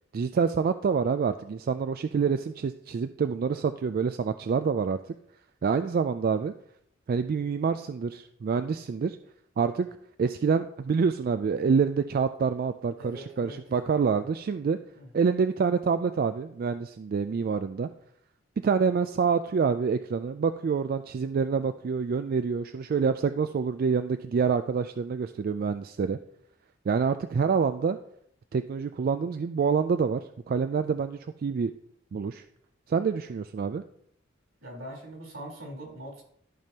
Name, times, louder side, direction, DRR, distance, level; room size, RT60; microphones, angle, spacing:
voice 1, 0.1-5.0 5.6-6.5 7.1-9.2 9.6-9.9 10.2-14.8 15.1-17.9 18.6-26.2 26.9-28.0 28.5-31.7 32.1-32.4 32.9-33.8, right 5 dB, 50° right, 10 dB, 0.3 m, -27 dB
voice 2, 13.0-14.0 14.9-15.1 34.6-36.2, equal, 80° right, -2 dB, 3.6 m, -42 dB
13.5 x 5.3 x 2.8 m, 0.67 s
head